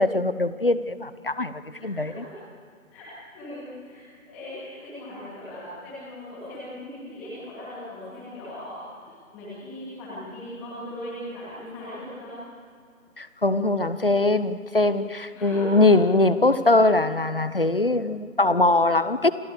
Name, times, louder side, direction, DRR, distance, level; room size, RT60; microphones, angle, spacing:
voice 1, 0.0-2.2 13.2-19.3, left 2 dB, 40° left, 14 dB, 0.9 m, -22 dB
voice 2, 1.7-2.3 2.9-3.0 3.3-8.8 9.3-12.4 15.3-15.8, left 1 dB, 5° left, -10 dB, 2.5 m, -39 dB
28.5 x 18.5 x 6.7 m, 2.2 s
figure-of-eight pair, 160°, 41 cm